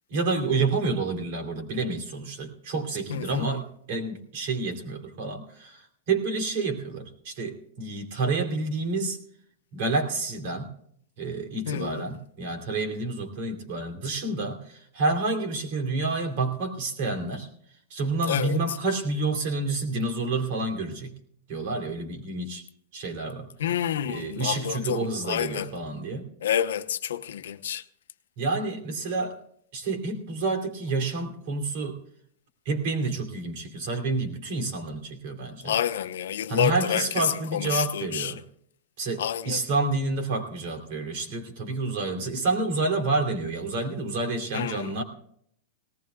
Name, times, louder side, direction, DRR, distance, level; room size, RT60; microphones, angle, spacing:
voice 1, 0.1-9.2 9.7-10.7 11.2-17.5 17.9-21.1 21.5-22.6 22.9-23.5 24.0-26.3 28.4-29.4 29.7-32.0 32.6-35.8 36.5-38.4 39.0-45.0, right 3 dB, 45° right, 2.9 m, -29 dB
voice 2, 3.1-3.4 11.7-12.0 18.3-18.6 23.6-25.7 26.4-27.8 35.6-37.3 37.5-38.3 39.2-39.6 44.5-44.9, left 10 dB, 90° left, 0.8 m, -28 dB
19.0 x 18.5 x 2.3 m
supercardioid pair, 175°, 0 cm